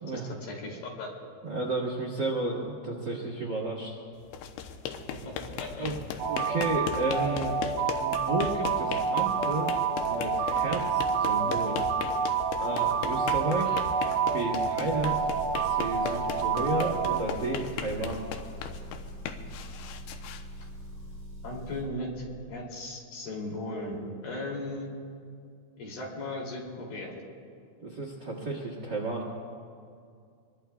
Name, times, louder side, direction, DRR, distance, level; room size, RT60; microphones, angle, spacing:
voice 1, 0.5-1.1 5.1-5.2 5.6-5.9 21.4-22.2 22.5-24.9 25.8-27.2, left 2 dB, 60° left, -2 dB, 4.4 m, -37 dB
voice 2, 1.4-4.0 5.8-7.5 8.0-9.8 10.0-11.8 12.6-13.8 14.3-15.2 15.6-18.2 27.8-29.3, right 2 dB, 85° right, -2 dB, 0.9 m, -32 dB
sound 1, 4.2-21.2, left 7 dB, 85° left, 2.9 m, -38 dB
sound 2, 6.2-17.2, right 6 dB, 70° right, 2.5 m, -28 dB
Motor vehicle (road) / Engine, 14.9-21.9, right 1 dB, 25° right, 5.0 m, -43 dB
25.5 x 22.5 x 2.3 m, 2.3 s
omnidirectional pair, 5.1 m